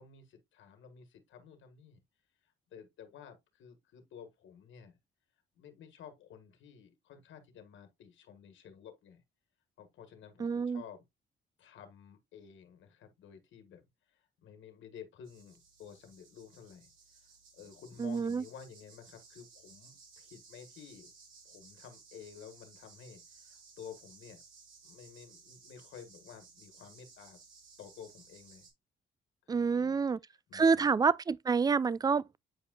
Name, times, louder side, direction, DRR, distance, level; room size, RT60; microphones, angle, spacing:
voice 1, 0.0-2.0 2.7-5.0 5.5-9.2 9.8-11.0 11.6-13.8 14.1-16.9 17.5-21.1 21.4-24.4 24.8-27.4 27.8-28.7 29.4-30.0 30.5-30.9, left 7 dB, 75° left, 1.5 m, -52 dB
voice 2, 10.4-10.8 18.0-18.4 29.5-30.2 30.5-32.4, right 5 dB, 20° right, 0.3 m, -28 dB
sound 1, 15.2-28.7, right 5 dB, 85° right, 3.0 m, -58 dB
8.6 x 5.0 x 2.2 m
cardioid pair, 90°, 20 cm